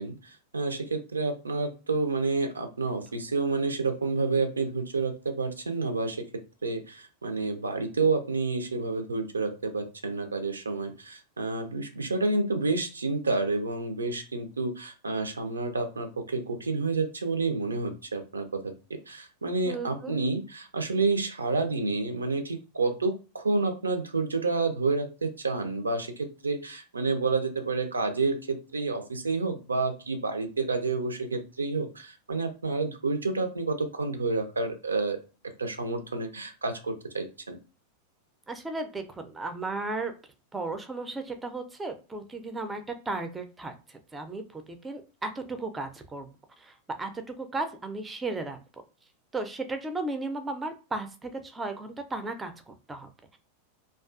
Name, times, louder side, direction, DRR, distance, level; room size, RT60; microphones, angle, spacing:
voice 1, 0.0-6.2 6.6-18.7 19.1-35.2 35.6-37.6, right 3 dB, 75° right, 7 dB, 0.4 m, -29 dB
voice 2, 19.7-20.2 38.5-40.1 40.5-46.3 46.6-48.6 49.3-53.4, right 3 dB, 15° right, 7 dB, 0.4 m, -35 dB
2.3 x 2.2 x 2.3 m, 0.33 s
figure-of-eight pair, 90°, 0 cm